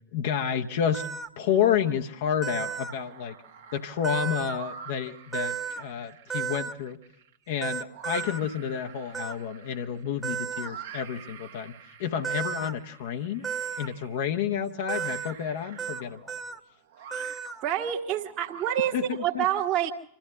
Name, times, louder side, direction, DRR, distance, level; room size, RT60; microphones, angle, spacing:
voice 1, 0.1-1.1 1.4-3.4 3.7-7.0 7.5-11.7 12.0-13.4 13.8-16.3 18.9-19.4, left 8 dB, 55° left, 6 dB, 0.9 m, -30 dB
sound 1, 0.9-1.3 2.4-2.9 4.0-4.6 5.3-5.8 6.3-6.7 7.6-8.4 9.1-9.3 10.2-10.7 12.2-12.7 13.4-13.9 14.9-15.3 15.8-16.0 16.3-16.6 17.1-17.6, right 7 dB, 10° right, 1.0 m, -33 dB
sound 2, 1.4-2.1 2.5-19.2, right 8 dB, 55° right, 1.3 m, -48 dB
voice 2, 17.6-19.9, right 11 dB, 35° right, 0 dB, 1.3 m, -27 dB
25.5 x 14.5 x 7.5 m, 0.76 s
figure-of-eight pair, 90°, 0 cm